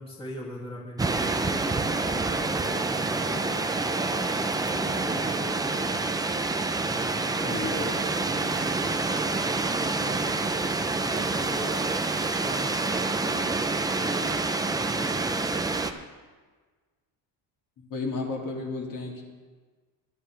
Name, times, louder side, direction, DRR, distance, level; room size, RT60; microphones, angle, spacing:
voice 1, 0.0-1.8 2.1-6.2 6.8-10.6 10.9-15.9, left 1 dB, 10° left, -4 dB, 2.2 m, -41 dB
sound 1, 1.0-15.9, right 3 dB, 10° right, 0.3 m, -27 dB
voice 2, 7.4-7.9 17.9-19.2, left 3 dB, 45° left, -2 dB, 2.4 m, -32 dB
22.5 x 11.0 x 3.2 m, 1.4 s
cardioid pair, 155°, 46 cm